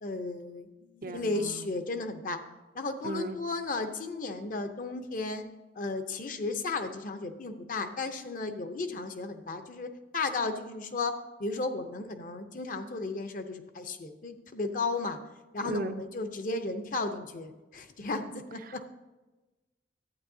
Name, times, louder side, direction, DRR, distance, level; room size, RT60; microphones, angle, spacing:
voice 1, 0.0-2.4 2.7-5.4 5.7-11.1 11.4-15.2 15.5-18.8, left 3 dB, 45° left, 7 dB, 0.6 m, -34 dB
voice 2, 1.0-1.7 3.0-3.4 15.6-16.0 18.7-18.9, right 2 dB, 50° right, 9 dB, 0.4 m, -36 dB
11.5 x 8.7 x 2.7 m, 1.1 s
head